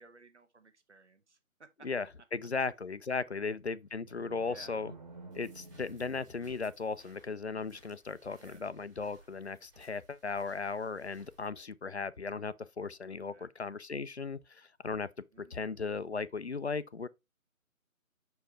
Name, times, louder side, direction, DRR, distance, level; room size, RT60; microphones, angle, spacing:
voice 1, 0.0-1.4 3.3-3.4 4.4-4.7 8.4-8.6 13.3-13.5 15.3-15.8, right 4 dB, 55° right, 1.3 m, -58 dB
voice 2, 1.8-4.9 5.3-15.1 15.4-17.1, left 4 dB, 55° left, 0.5 m, -37 dB
sound 1, 4.0-7.0, right 2 dB, 30° right, 1.8 m, -52 dB
sound 2, 5.3-11.5, right 2 dB, 15° right, 1.8 m, -62 dB
6.5 x 4.6 x 3.4 m
figure-of-eight pair, 155°, 42 cm